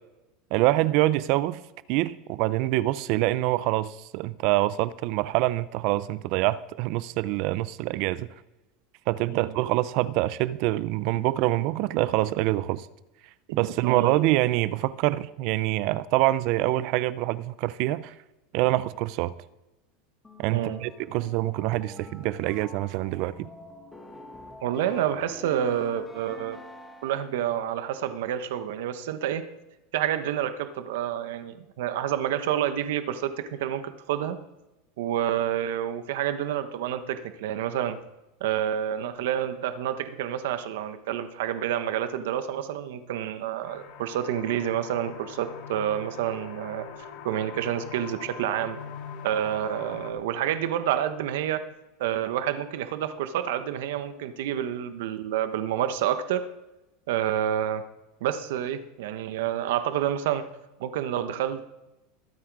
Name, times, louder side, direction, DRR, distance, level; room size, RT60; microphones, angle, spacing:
voice 1, 0.5-1.6 1.9-8.3 9.1-12.9 13.5-18.1 18.5-19.3 20.4-23.5, right 17 dB, 55° right, 0.5 m, -25 dB
voice 2, 13.8-14.2 20.5-20.8 24.6-26.6 27.0-29.4 29.9-34.4 35.0-38.0 38.4-46.9 47.2-48.8 49.2-51.6 52.0-56.4 57.1-57.8 58.2-60.5 60.8-61.7, right 10 dB, 80° right, 1.0 m, -28 dB
sound 1, 20.2-27.5, left 2 dB, 10° left, 1.6 m, -47 dB
sound 2, 43.6-50.1, left 6 dB, 60° left, 2.3 m, -42 dB
22.0 x 7.7 x 4.8 m
supercardioid pair, 145°, 0 cm